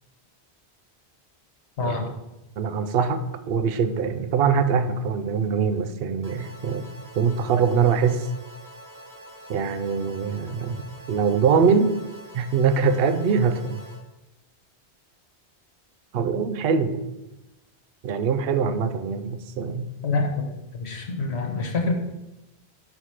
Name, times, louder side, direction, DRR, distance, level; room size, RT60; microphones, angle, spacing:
voice 1, 1.8-2.1 20.0-20.4 20.7-21.9, left 3 dB, 75° left, 2 dB, 1.3 m, -26 dB
voice 2, 2.6-6.8 7.2-8.3 9.5-10.8 11.1-12.0 12.3-13.8 16.1-17.0 18.0-19.9, right 6 dB, 65° right, 11 dB, 0.8 m, -23 dB
sound 1, 6.2-14.0, right 1 dB, 20° right, 0.9 m, -45 dB
5.7 x 4.8 x 5.7 m, 0.95 s
omnidirectional pair, 1.1 m